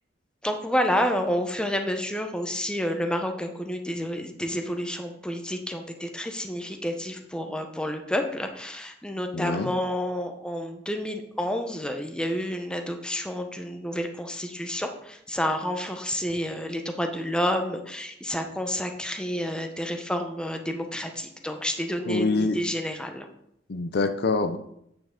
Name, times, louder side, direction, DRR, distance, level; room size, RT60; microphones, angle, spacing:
voice 1, 0.4-23.3, equal, 5° left, 5 dB, 0.7 m, -29 dB
voice 2, 9.3-9.7 22.1-22.6 23.7-24.6, left 3 dB, 60° left, 9 dB, 0.5 m, -25 dB
8.9 x 5.3 x 3.7 m, 0.75 s
head